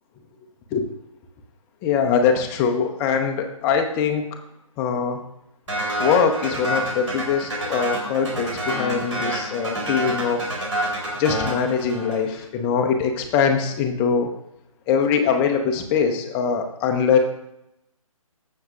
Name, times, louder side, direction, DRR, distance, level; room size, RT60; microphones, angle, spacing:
voice 1, 1.8-4.2 4.8-5.2 6.0-10.6 11.2-14.3 14.9-17.2, left 6 dB, 10° left, 4 dB, 0.5 m, -22 dB
sound 1, 5.7-12.4, right 1 dB, 60° right, 3.4 m, -28 dB
14.5 x 6.3 x 2.4 m, 0.81 s
figure-of-eight pair, 145°, 18 cm